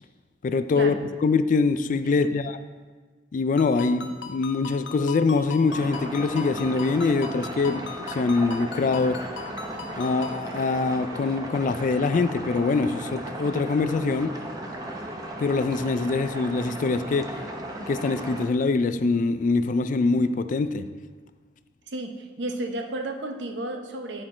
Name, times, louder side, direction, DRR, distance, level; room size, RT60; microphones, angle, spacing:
voice 1, 0.4-2.6 3.3-9.2 9.9-14.3 15.4-17.3 17.8-20.9, left 4 dB, 45° left, 11 dB, 0.3 m, -24 dB
Ringtone, 3.6-10.4, left 5 dB, 80° left, 0.6 m, -39 dB
sound 1, 5.7-18.5, right 1 dB, 20° right, 0.7 m, -36 dB
voice 2, 21.9-24.2, right 2 dB, 80° right, 5 dB, 0.7 m, -33 dB
9.7 x 4.4 x 4.3 m, 1.4 s
head